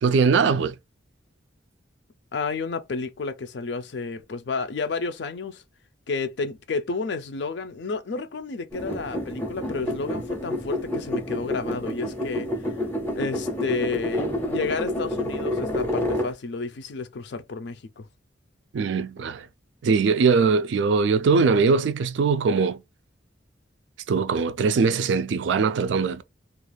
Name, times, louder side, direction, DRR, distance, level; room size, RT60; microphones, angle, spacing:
voice 1, 0.0-0.8 18.7-19.5 19.8-22.8 24.1-26.2, right 5 dB, 70° right, 0.3 m, -21 dB
voice 2, 2.3-5.6 6.1-12.5 13.2-18.1, left 4 dB, 60° left, 0.4 m, -31 dB
sound 1, 8.7-16.3, left 1 dB, 10° left, 0.6 m, -29 dB
2.4 x 2.3 x 3.1 m
head